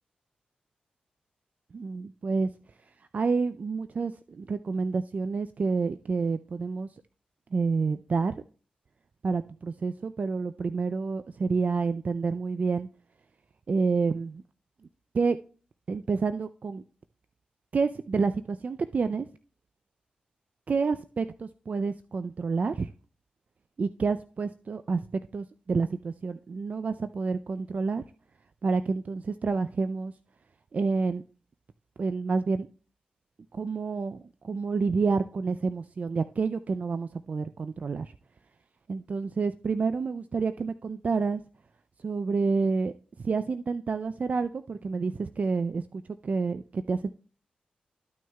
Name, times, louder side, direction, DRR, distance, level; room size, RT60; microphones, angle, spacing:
voice 1, 1.7-2.5 3.1-6.9 7.5-8.4 9.2-12.9 13.7-14.4 15.1-15.4 15.9-16.8 17.7-19.3 20.7-22.9 23.8-25.1 25.3-28.0 28.6-30.1 30.7-31.2 32.0-32.7 33.5-38.1 38.9-41.4 42.0-42.9 43.2-47.1, right 4 dB, 55° right, 0.4 m, -29 dB
13.5 x 6.2 x 2.3 m
supercardioid pair, 45°, 3 cm